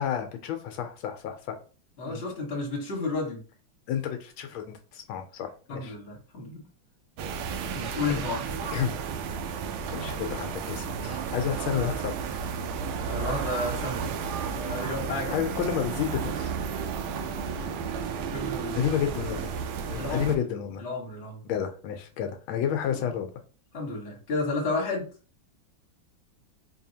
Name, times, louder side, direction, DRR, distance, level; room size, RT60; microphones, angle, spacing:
voice 1, 0.0-1.6 2.1-2.2 3.9-5.9 8.1-8.2 8.7-8.9 9.9-12.1 15.3-16.5 18.7-19.5 19.9-20.8 21.4-23.3, left 9 dB, 80° left, 6 dB, 1.4 m, -30 dB
voice 2, 2.0-3.4 5.7-6.6 7.7-8.5 13.0-14.1 14.5-15.4 18.3-18.9 19.9-20.3 20.8-21.4 22.9-23.1 23.7-25.1, left 3 dB, 40° left, -1 dB, 1.3 m, -32 dB
sound 1, 7.2-20.4, right 6 dB, 85° right, 1.4 m, -33 dB
4.6 x 2.7 x 2.7 m, 0.37 s
omnidirectional pair, 2.2 m